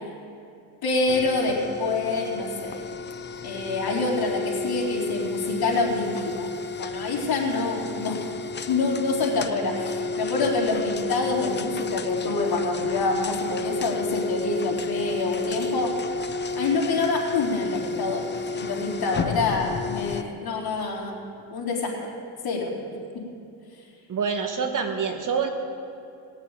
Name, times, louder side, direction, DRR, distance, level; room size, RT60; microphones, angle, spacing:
voice 1, 0.8-2.9 3.4-6.5 6.8-8.2 8.7-15.9 16.5-21.2 21.5-22.1 22.4-22.7, left 3 dB, 55° left, -3 dB, 3.9 m, -26 dB
sound 1, 1.1-20.2, left 3 dB, 25° left, 0.6 m, -31 dB
voice 2, 24.1-25.5, right 6 dB, 45° right, 5 dB, 1.7 m, -26 dB
19.0 x 7.3 x 8.9 m, 2.7 s
cardioid pair, 105°, 45 cm